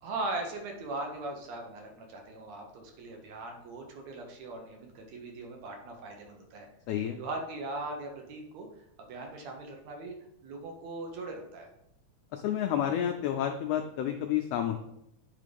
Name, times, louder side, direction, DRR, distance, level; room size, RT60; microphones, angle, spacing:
voice 1, 0.0-6.7 7.2-8.7 9.0-10.1 10.4-11.7, right 2 dB, 70° right, 2 dB, 2.3 m, -39 dB
voice 2, 6.9-7.2 12.3-14.8, left 10 dB, 85° left, 5 dB, 1.4 m, -30 dB
9.1 x 3.7 x 5.2 m, 0.80 s
omnidirectional pair, 3.4 m